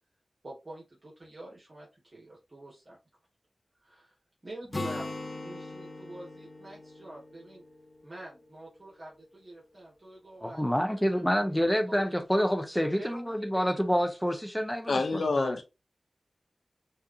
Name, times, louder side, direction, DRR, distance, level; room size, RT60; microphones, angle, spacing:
voice 1, 0.4-3.0 3.7-4.2 4.4-5.1 5.4-7.6 8.0-12.2 12.9-13.8, right 1 dB, 50° right, 2.1 m, -47 dB
Acoustic guitar, 4.7-8.4, left 2 dB, 40° left, 1.2 m, -40 dB
voice 2, 10.4-15.6, equal, 5° left, 1.0 m, -28 dB
voice 3, 14.9-15.6, left 3 dB, 75° left, 0.7 m, -27 dB
6.4 x 2.8 x 2.7 m
cardioid pair, 45°, 0 cm